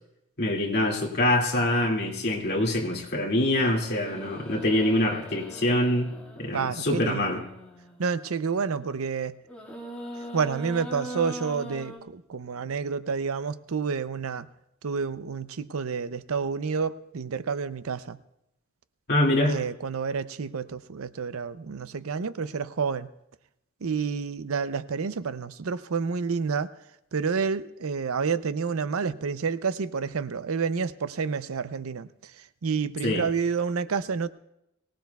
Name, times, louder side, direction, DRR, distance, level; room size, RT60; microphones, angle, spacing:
voice 1, 0.4-6.1 6.4-7.4 19.1-19.6 33.0-33.2, left 1 dB, 50° left, 2.3 m, -25 dB
sound 1, 3.4-8.2 9.4-12.0, equal, 5° left, 1.9 m, -41 dB
voice 2, 6.5-7.4 8.0-9.4 10.3-14.5 14.8-18.2 19.4-23.1 23.8-26.7 27.1-34.3, right 5 dB, 70° right, 0.5 m, -29 dB
23.0 x 18.0 x 2.3 m
head